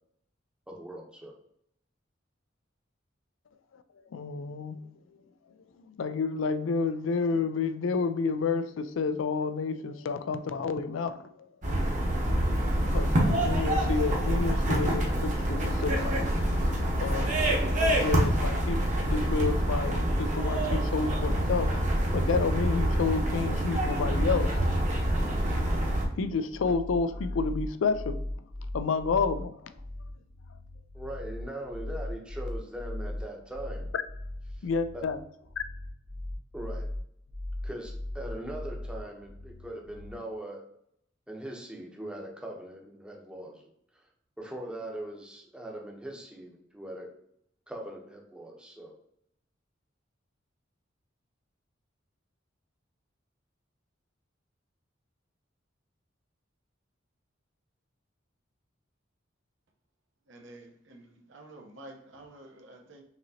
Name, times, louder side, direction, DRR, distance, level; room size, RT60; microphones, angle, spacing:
voice 1, 0.7-1.3 30.9-33.9 34.6-34.7 34.9-35.1 36.5-36.9 37.6-40.6 41.3-43.6 44.4-47.1 47.7-48.9, right 1 dB, 5° right, 0 dB, 0.8 m, -40 dB
voice 2, 4.1-4.8 6.0-11.3 11.8-11.9 12.9-16.1 17.0-21.7 22.1-24.5 26.2-28.2 28.7-29.5 34.6-35.2 35.6-35.7, left 4 dB, 75° left, 11 dB, 0.4 m, -30 dB
sound 1, 11.6-26.0, right 1 dB, 40° right, 0.9 m, -26 dB
sound 2, 25.9-40.2, left 1 dB, 50° left, 0.8 m, -39 dB
voice 3, 60.3-63.0, right 1 dB, 70° right, 2 dB, 0.9 m, -50 dB
5.8 x 2.9 x 2.8 m, 0.71 s
head